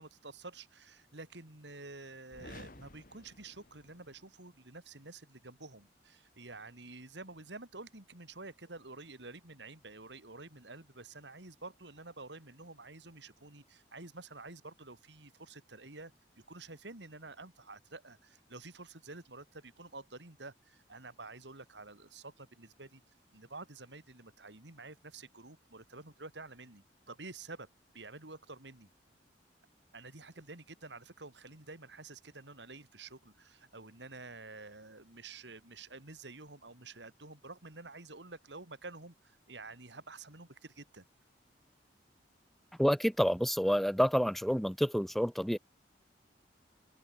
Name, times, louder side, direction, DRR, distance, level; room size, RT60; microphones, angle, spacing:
voice 1, 0.0-16.1 16.5-23.0 23.3-27.7 27.9-28.9 29.9-41.1, right 3 dB, 75° right, 3.8 m, -49 dB
sound 1, 2.3-4.3, left 2 dB, 50° left, 2.7 m, -53 dB
voice 2, 42.8-45.6, equal, ahead, 0.9 m, -28 dB
head